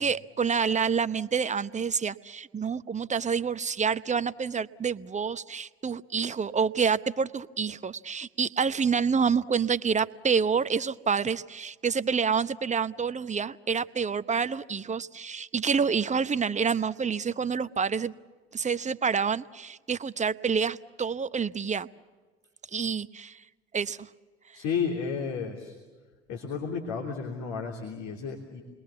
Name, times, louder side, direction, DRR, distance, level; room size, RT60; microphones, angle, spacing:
voice 1, 0.0-18.1 18.5-21.9 22.7-23.4 23.7-24.1, right 6 dB, 20° right, 14 dB, 0.9 m, -28 dB
voice 2, 24.5-25.7 26.3-28.6, left 6 dB, 60° left, 1 dB, 3.4 m, -32 dB
29.0 x 21.5 x 7.1 m, 1.4 s
hypercardioid pair, 60°, 32 cm